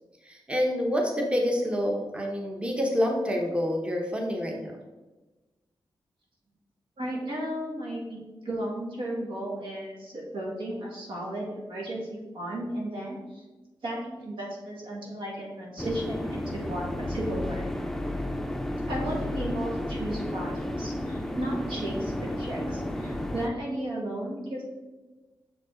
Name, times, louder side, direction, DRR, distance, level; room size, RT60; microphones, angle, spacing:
voice 1, 0.2-4.8, equal, 15° right, 1 dB, 0.9 m, -27 dB
voice 2, 7.0-13.4 13.8-17.6 18.9-24.6, right 1 dB, 80° right, -3 dB, 1.9 m, -34 dB
sound 1, 15.8-23.5, left 1 dB, 5° left, 0.5 m, -32 dB
6.4 x 5.2 x 3.8 m, 1.2 s
wide cardioid pair, 100°, 8 cm